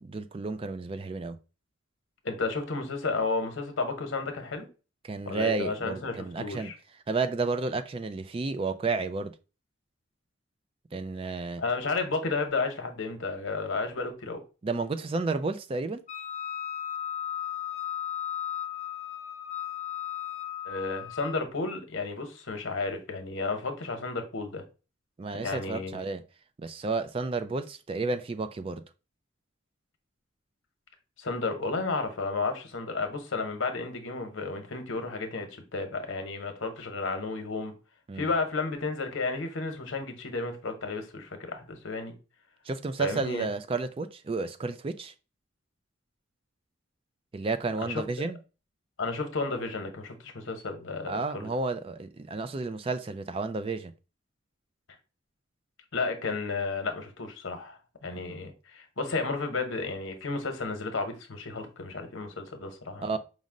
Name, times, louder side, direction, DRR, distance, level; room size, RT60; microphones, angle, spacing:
voice 1, 0.0-1.4 5.0-6.7 7.1-9.3 10.9-11.6 14.6-16.0 25.2-26.2 26.6-28.8 38.1-38.3 42.6-45.1 47.3-48.4 51.1-53.9 58.1-58.5 63.0-63.2, right 3 dB, 30° right, 0.3 m, -31 dB
voice 2, 2.2-4.7 5.3-6.7 11.6-14.4 20.6-24.6 25.4-26.0 31.2-37.7 38.2-42.1 43.0-43.5 47.8-48.3 49.0-51.5 55.9-63.2, left 3 dB, 85° left, 0.9 m, -32 dB
Wind instrument woodwind instrument, 16.1-21.4, left 10 dB, 35° left, 0.7 m, -35 dB
5.2 x 2.1 x 3.6 m
head